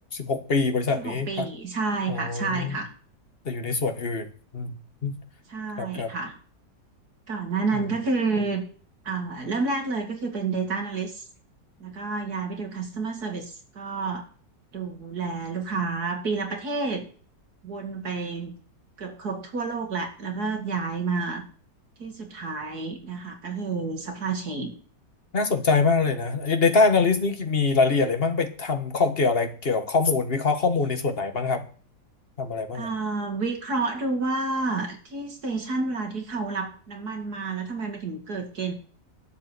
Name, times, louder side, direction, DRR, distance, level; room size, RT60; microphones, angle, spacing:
voice 1, 0.1-1.5 2.1-2.8 3.4-4.3 4.5-4.7 5.0-5.2 5.8-6.1 25.3-31.6 32.4-32.9, left 4 dB, 35° left, 7 dB, 1.7 m, -24 dB
voice 2, 0.9-2.9 5.5-6.3 7.3-8.6 9.0-11.2 11.8-14.2 14.7-17.1 17.6-18.5 19.0-21.4 22.0-24.7 32.7-38.7, right 4 dB, 60° right, 4 dB, 2.8 m, -29 dB
12.0 x 7.8 x 8.3 m, 0.44 s
omnidirectional pair, 1.8 m